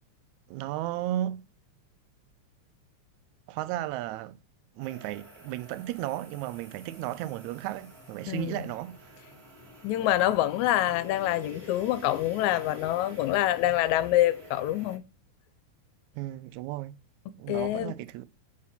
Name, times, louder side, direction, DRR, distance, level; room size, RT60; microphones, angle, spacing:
voice 1, 0.5-1.4 3.5-4.4 4.8-9.2 16.1-17.0 17.3-18.3, right 14 dB, 80° right, 1.9 m, -34 dB
sound 1, 4.8-15.0, left 1 dB, 25° right, 1.7 m, -49 dB
voice 2, 8.3-8.6 9.8-15.0 17.5-17.9, left 14 dB, 90° left, 2.0 m, -26 dB
5.9 x 4.7 x 4.2 m
omnidirectional pair, 3.3 m